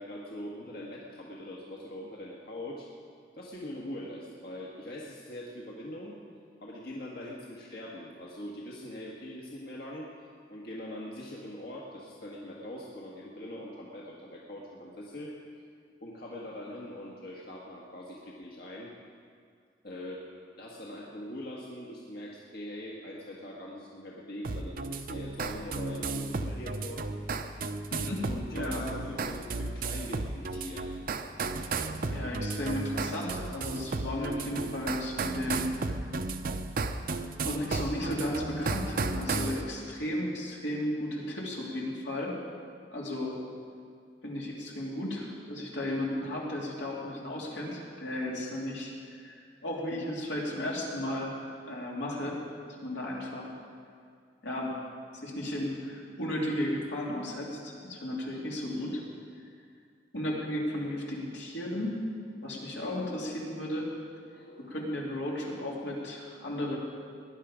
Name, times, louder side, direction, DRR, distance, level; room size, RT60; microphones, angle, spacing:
voice 1, 0.0-2.9 3.3-6.2 6.6-10.1 10.5-15.4 16.0-18.9 19.8-20.3 20.6-27.8 28.2-30.9 58.7-59.1 64.3-64.7, left 1 dB, 60° left, -3 dB, 1.5 m, -42 dB
sound 1, 24.4-39.6, right 3 dB, 55° right, 0.7 m, -34 dB
voice 2, 27.9-28.9 32.1-35.7 37.4-42.3 42.9-43.4 44.2-48.9 49.2-51.3 51.7-52.4 52.8-53.5 54.4-54.7 55.1-59.0 60.1-61.9 62.4-63.9 64.7-66.8, left 1 dB, 85° left, -3 dB, 3.0 m, -34 dB
19.0 x 10.5 x 5.1 m, 2.2 s
head